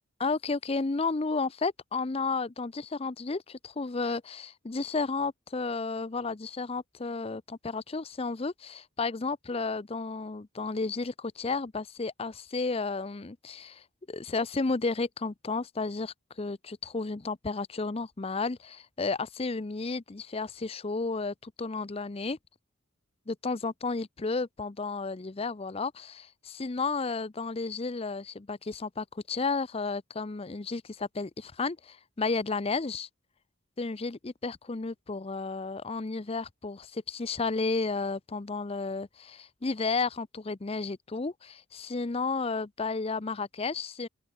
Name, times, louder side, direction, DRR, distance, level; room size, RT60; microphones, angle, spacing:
voice 1, 0.2-22.4 23.3-33.1 33.8-44.1, left 4 dB, 30° left, 0.6 m, -32 dB
open air
head